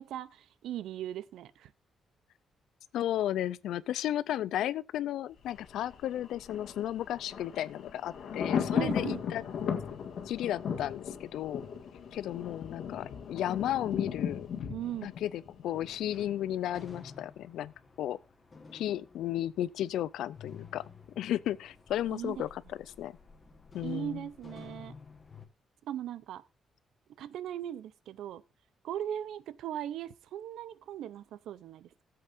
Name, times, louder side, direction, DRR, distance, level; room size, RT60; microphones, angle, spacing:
voice 1, 0.0-1.7 8.7-9.2 14.7-15.1 22.1-22.5 23.8-25.0 25.8-26.4 27.2-28.4 28.8-32.0, right 11 dB, 90° right, 0.6 m, -39 dB
voice 2, 2.9-9.4 10.3-11.7 12.1-14.5 15.0-17.7 18.0-18.2 18.7-20.8 21.2-23.2 23.7-24.3, left 12 dB, 90° left, 0.4 m, -34 dB
Thunder, 5.4-16.4 16.7-16.8, left 7 dB, 60° left, 1.7 m, -36 dB
sound 1, 15.7-25.5, left 4 dB, 25° left, 1.4 m, -52 dB
18.0 x 7.8 x 2.5 m
cardioid pair, 165°, 0 cm